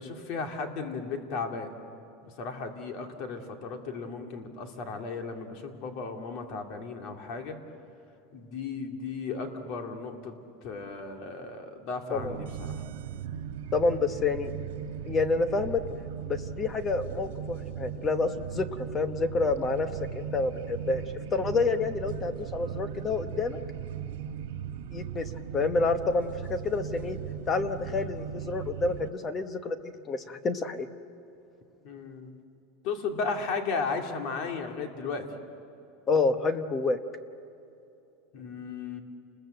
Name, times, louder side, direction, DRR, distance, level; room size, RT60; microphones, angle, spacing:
voice 1, 0.0-1.7 2.2-7.6 8.3-12.8 31.8-32.4 32.8-35.3 38.3-39.0, left 4 dB, 45° left, 4 dB, 2.6 m, -35 dB
sound 1, 12.1-29.1, right 9 dB, 85° right, 1.7 m, -38 dB
voice 2, 13.7-14.5 15.0-15.8 16.2-21.0 21.3-23.6 24.9-27.2 27.5-30.9 36.1-37.0, left 3 dB, 20° left, 10 dB, 1.0 m, -28 dB
30.0 x 21.5 x 7.9 m, 2.8 s
supercardioid pair, 165°, 0 cm